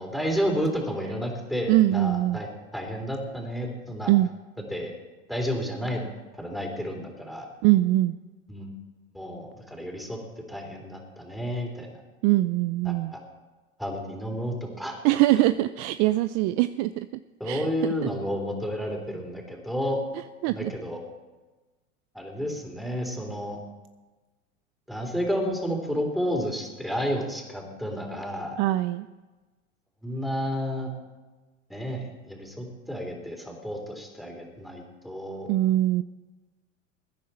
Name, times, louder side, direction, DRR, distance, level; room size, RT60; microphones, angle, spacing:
voice 1, 0.0-4.1 4.7-4.9 5.3-6.1 6.3-7.5 8.5-8.7 9.1-10.2 10.5-12.0 12.8-13.2 13.8-15.0 17.4-20.0 20.5-21.0 22.1-23.6 24.9-28.6 30.0-30.9 31.7-35.5, equal, ahead, 1 dB, 3.7 m, -31 dB
voice 2, 1.7-2.4 4.1-4.3 7.6-8.2 12.2-13.1 15.0-17.1 17.4-17.7 18.0-18.1 20.4-20.7 28.6-29.1 35.5-36.0, right 16 dB, 45° right, 13 dB, 0.6 m, -22 dB
22.0 x 10.0 x 4.3 m, 1.2 s
hypercardioid pair, 100°, 40 cm